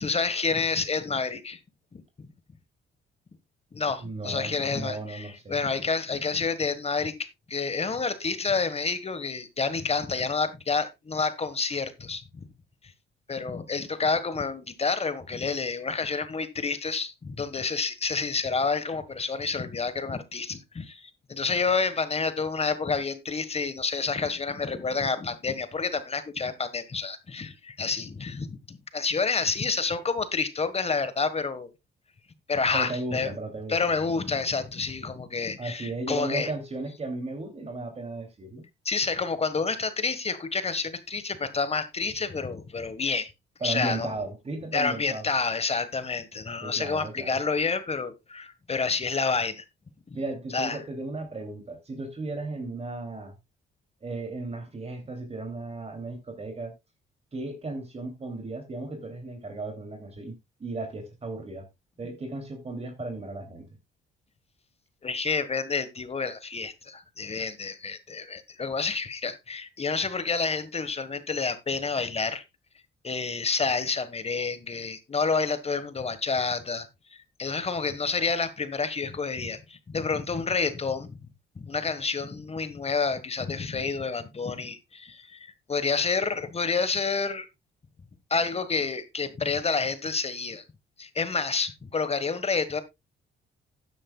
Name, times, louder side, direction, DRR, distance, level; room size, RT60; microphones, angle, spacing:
voice 1, 0.0-1.6 1.9-2.3 3.7-12.4 13.3-31.7 32.5-33.3 33.7-36.5 38.8-43.3 43.6-44.1 44.7-49.6 50.1-50.2 50.5-50.8 65.0-72.4 73.0-81.1 81.6-87.5 88.3-90.6 91.0-92.8, left 4 dB, 30° left, 1.4 m, -29 dB
voice 2, 4.0-5.6 32.7-34.2 35.6-38.7 43.6-45.3 46.6-47.4 50.1-53.3 54.0-56.7 57.3-60.3 60.6-61.7 62.0-63.7, right 2 dB, 30° right, 2.9 m, -35 dB
13.0 x 10.0 x 2.3 m
cardioid pair, 90°, 20 cm